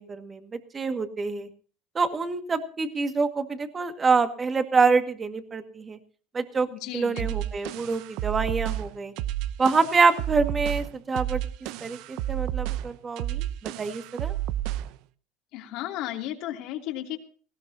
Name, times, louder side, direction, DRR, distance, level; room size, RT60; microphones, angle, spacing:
voice 1, 0.0-1.5 2.0-6.0 6.3-6.7 6.9-9.1 9.6-11.4 11.8-14.3, right 4 dB, 25° right, 7 dB, 1.9 m, -26 dB
voice 2, 6.7-7.3 15.5-17.2, left 13 dB, 65° left, 3 dB, 2.9 m, -34 dB
sound 1, 7.2-15.0, right 13 dB, 70° right, 0.7 m, -31 dB
19.0 x 16.5 x 2.8 m, 0.41 s
supercardioid pair, 110°, 0 cm